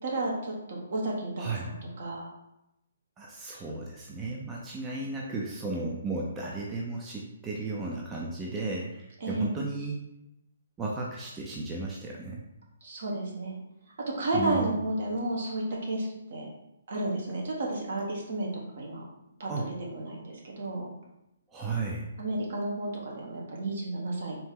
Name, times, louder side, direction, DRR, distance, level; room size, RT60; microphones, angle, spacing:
voice 1, 0.0-2.3 9.2-9.5 12.8-13.6 14.1-16.5 16.9-18.5 18.8-19.0 19.4-19.5 19.9-20.9 22.2-24.4, right 2 dB, 60° right, -2 dB, 1.3 m, -32 dB
voice 2, 3.2-10.0 10.8-12.4 14.3-14.8 19.5-19.7 21.5-22.1, right 3 dB, 15° right, -3 dB, 0.5 m, -34 dB
4.1 x 2.8 x 3.6 m, 0.87 s
hypercardioid pair, 145°, 0 cm